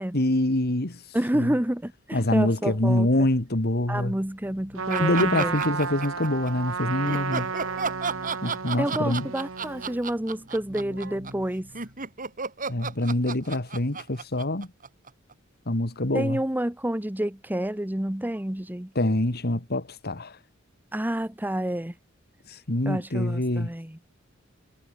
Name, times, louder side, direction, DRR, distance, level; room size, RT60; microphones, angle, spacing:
voice 1, 0.1-1.0 1.3-1.5 2.1-4.2 5.0-7.5 8.4-9.3 12.7-14.7 15.7-16.4 19.0-20.4 22.5-23.7, left 1 dB, 50° left, 2.3 m, -25 dB
voice 2, 1.1-3.1 3.9-5.5 8.8-11.7 16.1-18.9 20.9-21.9 22.9-24.0, right 1 dB, 10° right, 1.0 m, -29 dB
Keyboard (musical), 4.2-12.2, right 1 dB, 60° right, 5.9 m, -49 dB
Trumpet, 4.8-10.0, right 5 dB, 80° right, 1.2 m, -32 dB
sound 1, 4.9-6.5 7.1-15.3, right 5 dB, 40° right, 4.9 m, -33 dB
head